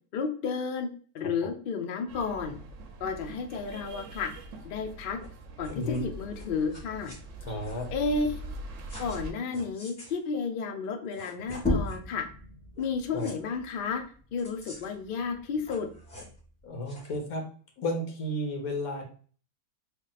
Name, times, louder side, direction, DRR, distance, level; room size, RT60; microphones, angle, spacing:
voice 1, 0.1-0.9 1.1-2.6 3.0-4.3 4.6-5.2 5.6-7.1 7.9-8.5 9.0-12.3 12.8-14.0 14.3-15.9, left 5 dB, 85° left, 5 dB, 0.4 m, -32 dB
sound 1, 2.1-9.3, right 1 dB, 65° right, 0.8 m, -43 dB
sound 2, 5.2-5.3 5.6-6.0 6.3-7.2 7.6-7.9 8.9-9.2 9.5-10.2 10.8-10.9 11.1-12.0 12.7-12.9 13.1-13.3 14.4-15.0 15.5-16.4 16.9-17.2, left 1 dB, 30° left, 1.8 m, -48 dB
voice 2, 7.4-7.9 13.1-13.3 16.6-17.4 17.8-19.0, left 1 dB, 70° left, 3 dB, 1.4 m, -32 dB
sound 3, 11.5-16.7, left 2 dB, 10° left, 0.4 m, -36 dB
3.4 x 2.2 x 3.9 m, 0.42 s
omnidirectional pair, 1.7 m